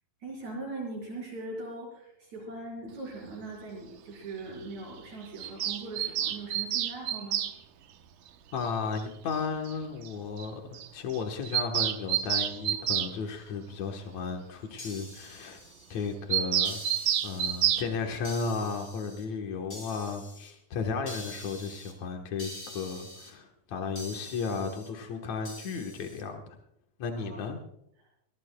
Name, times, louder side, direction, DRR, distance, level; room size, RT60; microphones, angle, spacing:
voice 1, 0.2-7.4 27.1-27.4, right 2 dB, 40° right, -2 dB, 6.2 m, -40 dB
Bird vocalization bird call bird song, 5.4-7.5 9.0-9.1 9.3-9.4 9.7-9.8 10.1-10.2 10.4-10.5 10.7-10.9 11.1-13.1 16.3-17.9, right 11 dB, 80° right, 1.9 m, -28 dB
voice 2, 8.5-15.6 15.9-16.8 17.2-26.4 27.0-27.6, left 5 dB, 75° left, 3 dB, 1.6 m, -34 dB
sound 1, 14.8-16.1 16.6-17.8 18.2-19.2 19.7-20.5 21.1-21.9 22.4-23.3 24.0-24.9 25.4-26.2, left 1 dB, 15° left, 4.1 m, -45 dB
22.5 x 19.5 x 2.3 m, 0.80 s
omnidirectional pair, 5.2 m